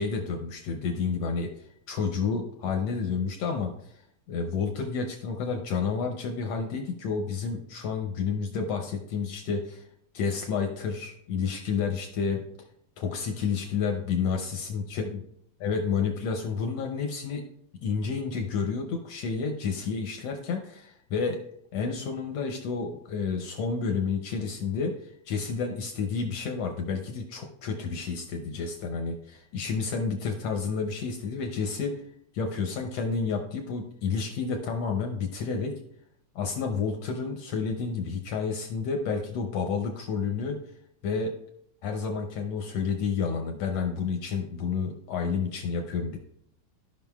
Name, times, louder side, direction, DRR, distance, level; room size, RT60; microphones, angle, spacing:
voice 1, 0.0-1.5 1.9-4.0 4.3-9.9 10.1-12.4 13.0-15.2 15.6-17.4 17.8-21.4 21.7-32.0 32.3-35.8 36.3-40.6 41.0-41.3 41.8-46.2, left 5 dB, 75° left, 4 dB, 1.5 m, -30 dB
14.5 x 5.4 x 2.3 m, 0.71 s
omnidirectional pair, 3.6 m